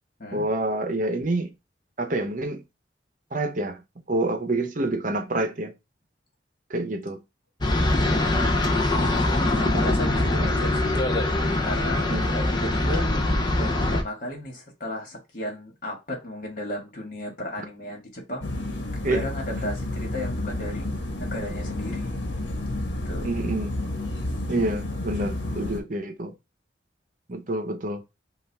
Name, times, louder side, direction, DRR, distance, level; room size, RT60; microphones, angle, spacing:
voice 1, 0.3-1.5 2.0-2.6 3.3-3.8 4.1-5.7 6.7-7.2 10.4-10.5 12.1-12.3 19.0-19.2 23.2-23.7 24.5-26.3 27.3-28.0, right 2 dB, 45° right, 0.8 m, -27 dB
sound 1, 7.6-14.0, left 2 dB, 25° left, 0.7 m, -23 dB
voice 2, 9.2-11.0 11.6-13.1 13.6-18.5 19.1-20.9 21.2-22.2 23.0-23.3, left 1 dB, 45° left, 1.8 m, -34 dB
sound 2, 18.4-25.8, left 1 dB, 70° left, 1.2 m, -31 dB
5.5 x 2.5 x 3.5 m
head